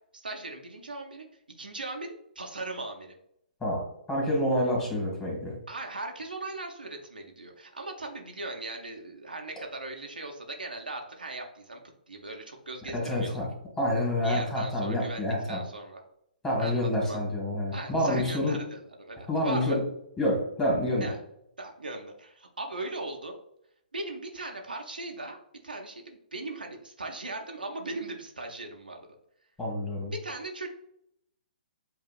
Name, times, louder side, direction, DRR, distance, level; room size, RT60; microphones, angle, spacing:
voice 1, 0.1-1.3 1.6-3.1 5.7-11.8 12.1-13.5 14.2-16.0 16.6-17.2 17.7-19.8 21.0-21.2 21.6-23.4 23.9-25.4 25.6-29.0 30.1-30.7, right 2 dB, 75° right, 2 dB, 0.9 m, -39 dB
voice 2, 3.6-5.6 12.9-13.5 13.8-15.6 16.4-18.6 19.3-19.8 20.2-21.1 29.6-30.1, left 1 dB, 10° left, -3 dB, 1.9 m, -28 dB
7.8 x 2.8 x 2.4 m, 0.74 s
figure-of-eight pair, 125°, 5 cm